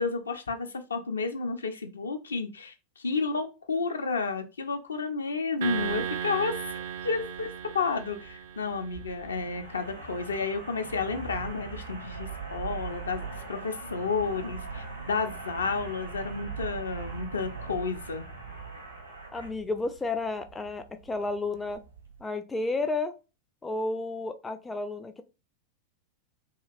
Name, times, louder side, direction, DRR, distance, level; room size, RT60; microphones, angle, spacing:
voice 1, 0.0-6.6 7.0-18.3, left 4 dB, 70° left, 7 dB, 0.5 m, -31 dB
sound 1, 5.6-9.1, right 9 dB, 55° right, 0.4 m, -35 dB
sound 2, 5.7-22.2, right 4 dB, 80° right, 1.2 m, -42 dB
voice 2, 19.3-21.8 22.2-23.1 23.6-25.2, left 3 dB, 10° left, 8 dB, 0.3 m, -32 dB
2.8 x 2.8 x 2.4 m, 0.29 s
figure-of-eight pair, 90°, 0 cm